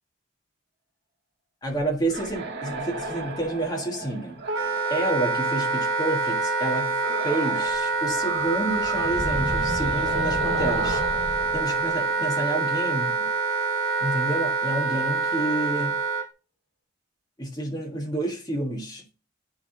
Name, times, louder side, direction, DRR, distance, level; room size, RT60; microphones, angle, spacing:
voice 1, 1.6-4.4 4.9-6.9 7.2-11.0 11.5-13.3 14.0-16.0 17.4-19.2, right 2 dB, 20° left, 1.5 m, -29 dB
sound 1, 2.1-5.9 7.0-7.8 8.0-12.9, right 1 dB, 55° right, 1.5 m, -33 dB
Wind instrument woodwind instrument, 4.5-16.3, right 4 dB, 80° right, 0.8 m, -26 dB
9.6 x 3.6 x 3.7 m
head